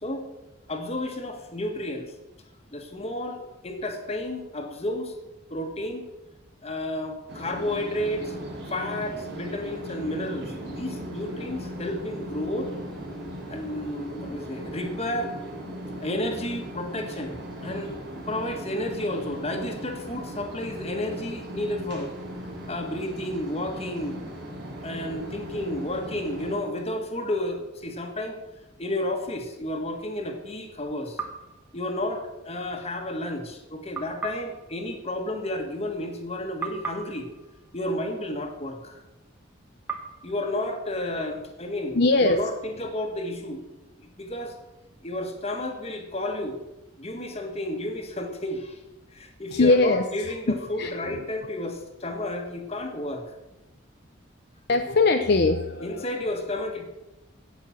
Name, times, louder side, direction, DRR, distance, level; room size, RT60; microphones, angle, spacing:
voice 1, 0.7-2.1 2.7-5.2 5.5-6.0 6.6-8.3 8.7-12.7 13.5-15.3 16.0-17.4 17.6-17.9 18.3-22.1 22.7-24.2 24.8-28.4 28.8-31.2 31.7-37.3 37.7-39.0 40.2-43.7 44.0-44.6 45.0-46.6 47.0-48.8 49.1-53.2 55.8-56.9, left 1 dB, 30° left, 4 dB, 1.7 m, -31 dB
sound 1, 7.3-26.6, equal, 55° right, 3.6 m, -38 dB
sound 2, 31.2-32.5 33.9-36.3 36.6-38.9 39.9-41.7, right 5 dB, 10° right, 1.4 m, -41 dB
voice 2, 41.9-42.4 49.5-51.2 54.7-56.0, left 3 dB, 55° left, 6 dB, 0.7 m, -22 dB
16.0 x 6.1 x 7.3 m, 0.99 s
head